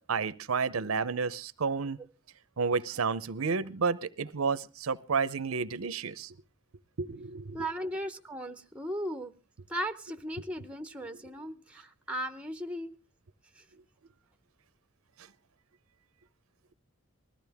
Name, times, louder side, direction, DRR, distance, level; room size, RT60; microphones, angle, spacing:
voice 1, 0.0-2.0 2.6-6.3 7.0-7.7 10.1-10.2 11.1-11.2, right 5 dB, 90° right, 0.7 m, -31 dB
voice 2, 7.5-9.3 9.7-12.9 13.6-13.7, equal, 5° right, 0.8 m, -37 dB
20.5 x 14.0 x 3.5 m
head